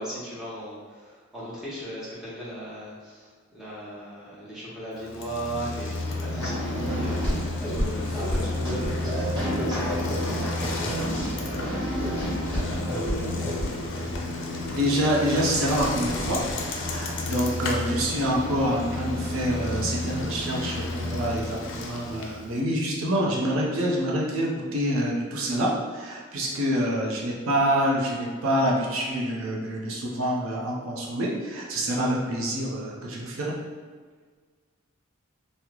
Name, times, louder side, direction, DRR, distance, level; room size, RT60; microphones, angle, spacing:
voice 1, 0.0-12.1 12.4-13.2 13.5-14.0, right 1 dB, ahead, -10 dB, 0.9 m, -38 dB
Bicycle, 5.0-22.5, left 2 dB, 60° left, 0.4 m, -31 dB
sound 1, 6.4-14.7, equal, 25° right, 1.1 m, -31 dB
voice 2, 14.7-16.4 16.8-33.5, equal, 75° right, -3 dB, 0.6 m, -26 dB
2.9 x 2.1 x 3.6 m, 1.5 s
head